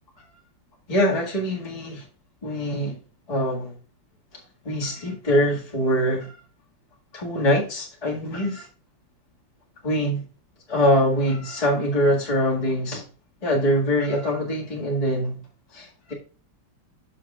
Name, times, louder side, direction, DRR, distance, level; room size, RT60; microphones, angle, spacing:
voice 1, 0.9-2.0 2.4-3.0 3.3-3.7 4.6-6.3 7.1-8.7 9.8-10.2 10.7-13.0 13.4-15.4 15.7-16.1, equal, 20° left, 1.8 m, -23 dB
13.0 x 5.8 x 2.4 m
omnidirectional pair, 2.2 m